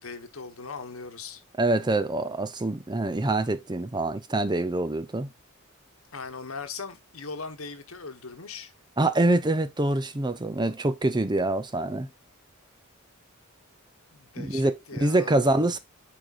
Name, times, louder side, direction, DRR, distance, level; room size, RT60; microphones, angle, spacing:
voice 1, 0.0-1.4 6.1-8.7 14.1-15.3, left 4 dB, 75° left, 1.2 m, -39 dB
voice 2, 1.6-5.3 9.0-12.1 14.4-14.7 15.0-15.8, right 2 dB, 20° right, 0.6 m, -25 dB
8.9 x 4.8 x 2.5 m
head